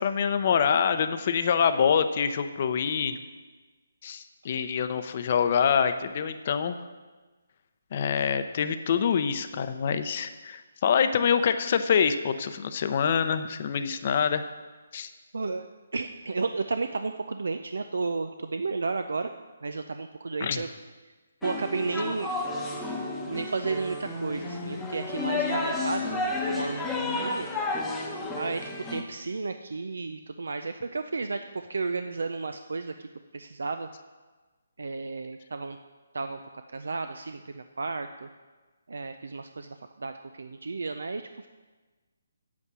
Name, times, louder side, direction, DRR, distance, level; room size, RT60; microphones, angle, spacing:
voice 1, 0.0-3.2 4.0-6.8 7.9-14.4 14.9-15.1 20.4-20.6, left 7 dB, 40° left, 10 dB, 0.7 m, -25 dB
voice 2, 15.3-15.6 15.9-19.3 19.6-20.7 21.0-21.1 21.4-22.3 23.3-27.5 28.4-33.1 33.3-33.9 34.8-35.8 36.1-36.4 36.7-38.3 38.9-41.5, right 3 dB, 80° right, 8 dB, 0.5 m, -33 dB
sound 1, 21.4-29.0, left 2 dB, 5° left, 0.9 m, -31 dB
8.5 x 8.4 x 6.2 m, 1.3 s
hypercardioid pair, 165°, 0 cm